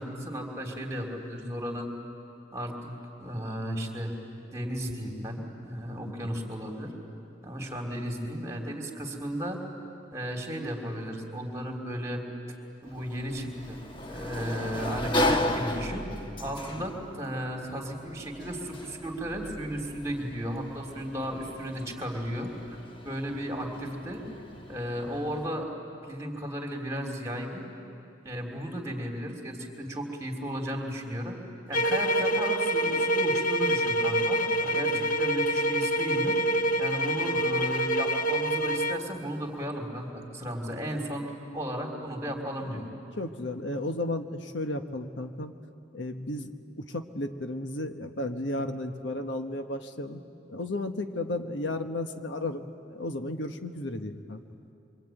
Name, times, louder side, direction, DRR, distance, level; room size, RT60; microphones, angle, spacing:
voice 1, 0.0-1.9 2.5-4.2 4.5-6.9 7.4-9.6 10.1-12.2 12.8-16.1 16.4-22.5 23.0-24.2 24.7-25.7 26.1-27.6 28.2-31.4 31.7-36.4 36.8-42.9, equal, 15° right, 1 dB, 3.2 m, -35 dB
voice 2, 6.0-6.4 34.9-35.1 42.6-42.8 43.2-45.5 45.9-46.5 46.8-50.2 50.5-54.4, left 1 dB, 75° left, 6 dB, 1.3 m, -34 dB
Sliding door, 12.8-25.5, left 1 dB, 25° left, 1.2 m, -35 dB
sound 1, 31.7-39.1, equal, 45° left, 0.8 m, -26 dB
25.0 x 25.0 x 9.2 m, 2.6 s
head